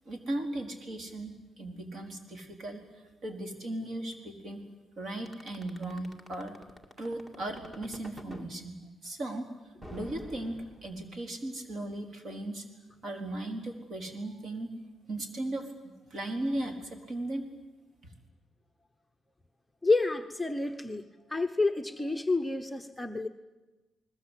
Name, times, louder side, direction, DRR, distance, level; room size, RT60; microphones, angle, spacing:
voice 1, 0.1-2.8 3.2-4.6 5.0-6.5 7.0-8.7 9.0-9.5 9.9-12.6 13.0-14.7 15.1-15.7 16.1-17.4, right 1 dB, 50° right, 4 dB, 4.4 m, -37 dB
sound 1, 5.3-8.5 9.8-11.2, equal, 15° right, 2.4 m, -47 dB
voice 2, 19.8-21.0 21.3-23.3, left 3 dB, 5° left, 5 dB, 1.0 m, -29 dB
29.5 x 20.5 x 8.4 m, 1.1 s
cardioid pair, 135°, 0 cm